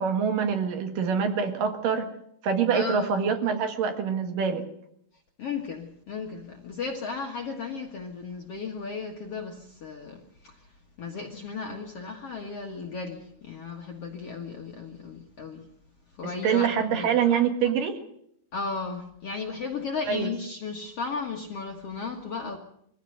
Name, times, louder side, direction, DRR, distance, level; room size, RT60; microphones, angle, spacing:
voice 1, 0.0-2.1 2.4-4.7 16.2-18.0 20.1-20.3, right 7 dB, 65° right, 7 dB, 3.4 m, -25 dB
voice 2, 2.7-3.3 5.4-10.6 11.0-15.6 16.2-17.1 18.5-22.6, left 4 dB, 50° left, 2 dB, 2.2 m, -35 dB
22.5 x 15.5 x 7.9 m, 0.73 s
omnidirectional pair, 4.2 m